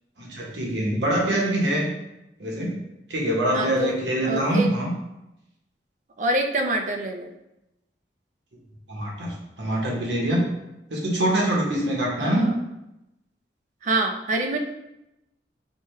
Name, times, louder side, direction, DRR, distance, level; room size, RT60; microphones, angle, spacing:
voice 1, 0.2-1.9 2.4-2.7 3.1-4.9 8.9-10.4 10.9-12.5, right 1 dB, 85° right, -2 dB, 1.0 m, -24 dB
voice 2, 3.5-4.7 6.2-7.3 12.2-12.6 13.8-14.6, right 2 dB, 45° right, 4 dB, 0.4 m, -26 dB
5.0 x 2.2 x 3.1 m, 0.91 s
head